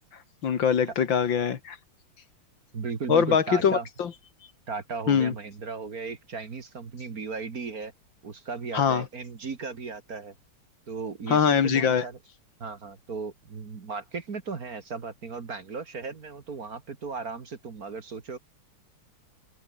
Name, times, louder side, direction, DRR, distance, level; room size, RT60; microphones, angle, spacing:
voice 1, 0.4-1.8 3.1-4.1 5.1-5.3 8.7-9.1 11.3-12.1, left 7 dB, 60° left, 2.3 m, -23 dB
voice 2, 2.7-3.9 4.7-7.9 8.2-10.3 10.9-12.2 12.6-18.4, right 4 dB, 45° right, 2.2 m, -36 dB
omnidirectional pair, 2.4 m